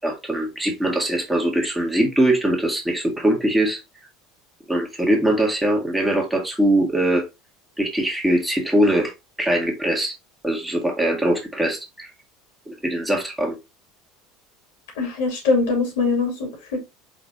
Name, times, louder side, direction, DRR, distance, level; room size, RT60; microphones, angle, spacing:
voice 1, 0.0-3.8 4.7-7.3 7.8-9.1 9.4-10.2 10.4-12.1 12.7-13.6, right 1 dB, 10° right, 1.9 m, -21 dB
voice 2, 15.0-16.8, left 4 dB, 65° left, 2.5 m, -22 dB
5.2 x 3.9 x 2.5 m
figure-of-eight pair, 70°, 0 cm